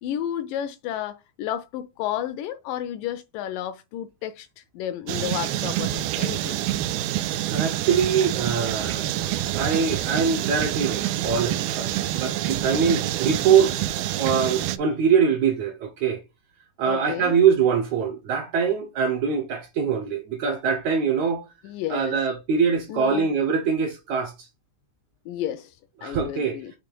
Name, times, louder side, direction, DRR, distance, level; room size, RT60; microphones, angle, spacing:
voice 1, 0.0-6.6 16.9-17.4 21.6-22.2 22.9-23.3 25.3-25.8 26.0-26.7, left 11 dB, 80° left, 2.0 m, -32 dB
sound 1, 5.1-14.8, right 13 dB, 90° right, 2.4 m, -27 dB
voice 2, 7.5-9.1 9.6-13.8 14.2-16.2 16.8-21.5 21.9-24.3 26.0-26.6, right 6 dB, 70° right, 1.8 m, -23 dB
6.8 x 3.2 x 5.2 m
omnidirectional pair, 4.2 m